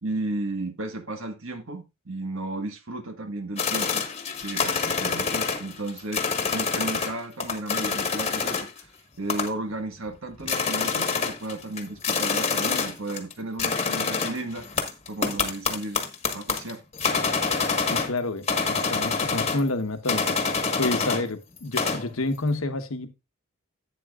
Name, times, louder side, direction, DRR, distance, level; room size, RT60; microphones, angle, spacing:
voice 1, 0.0-4.1 4.4-8.9 9.2-14.7 15.1-16.0 16.3-16.8, right 2 dB, 65° right, 1.5 m, -34 dB
sound 1, 3.6-7.1 7.4-8.8 9.3-9.7 10.1-10.2 10.4-13.3 13.6-18.2 18.5-19.7 20.1-21.3 21.6-22.1, left 5 dB, 30° left, 1.3 m, -26 dB
voice 2, 17.9-20.4 20.8-23.1, left 2 dB, 70° left, 1.1 m, -29 dB
11.5 x 8.7 x 2.4 m
head